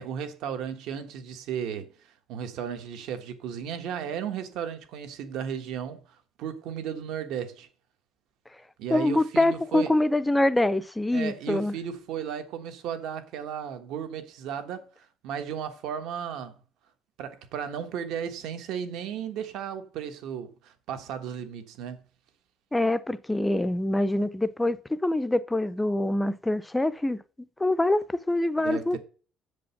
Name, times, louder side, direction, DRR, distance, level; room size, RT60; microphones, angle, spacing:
voice 1, 0.0-7.7 8.8-9.9 11.1-16.6 17.2-22.0 28.6-29.0, right 8 dB, 70° right, 1.4 m, -35 dB
voice 2, 8.9-11.7 22.7-27.2 27.6-29.0, left 1 dB, 5° left, 0.4 m, -25 dB
7.7 x 5.2 x 7.0 m
cardioid pair, 180°, 0 cm